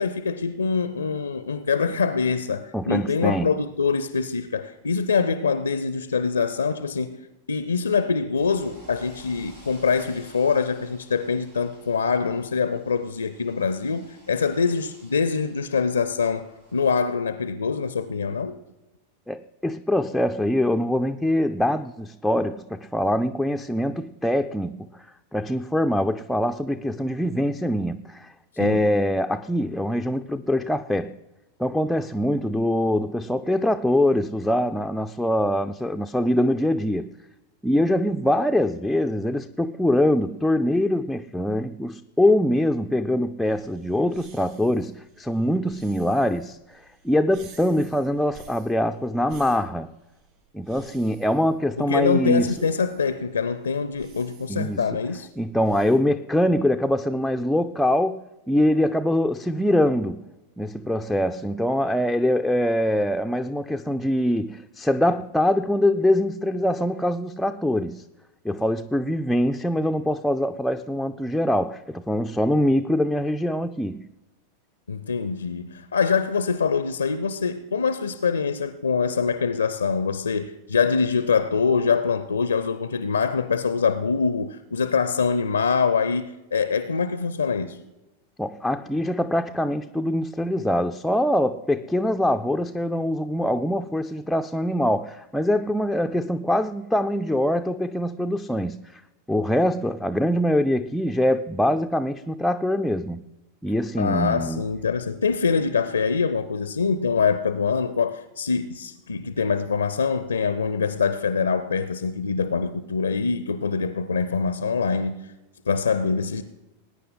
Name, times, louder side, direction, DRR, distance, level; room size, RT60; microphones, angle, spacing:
voice 1, 0.0-7.2 7.5-18.6 28.6-28.8 51.8-55.3 74.9-87.8 104.0-115.2 115.7-116.4, left 5 dB, 75° left, 0.5 m, -24 dB
voice 2, 2.7-3.5 19.3-24.9 25.3-31.2 31.6-37.1 37.6-49.9 50.5-52.5 54.5-55.0 55.4-60.2 60.6-68.0 68.4-74.1 88.4-99.0 99.3-103.2 103.6-104.6, left 1 dB, ahead, 0.4 m, -23 dB
sound 1, 8.3-16.9, equal, 80° right, 6.0 m, -53 dB
sound 2, 43.4-56.0, right 6 dB, 45° right, 4.7 m, -52 dB
20.5 x 9.7 x 3.8 m
figure-of-eight pair, 90°, 0 cm